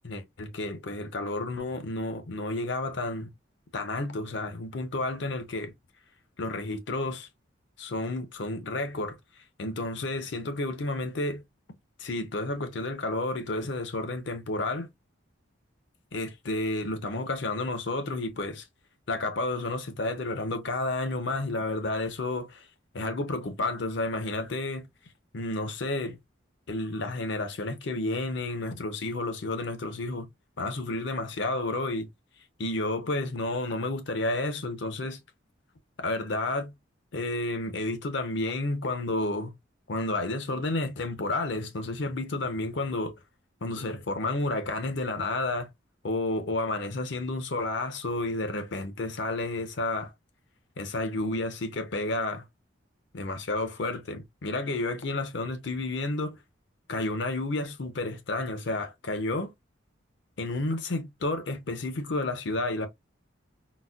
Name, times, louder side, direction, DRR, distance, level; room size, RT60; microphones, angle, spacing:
voice 1, 0.0-3.3 3.7-5.7 6.4-7.3 7.8-9.2 9.6-11.4 12.0-14.9 16.1-18.7 19.1-22.7 22.9-24.9 25.3-26.2 26.7-30.3 30.6-32.1 32.6-35.2 36.0-36.7 37.1-39.5 39.9-43.2 43.6-45.7 46.0-50.1 50.8-52.4 53.1-56.4 56.9-59.5 60.4-62.9, left 2 dB, 65° left, 0.7 m, -31 dB
4.0 x 2.1 x 2.3 m
head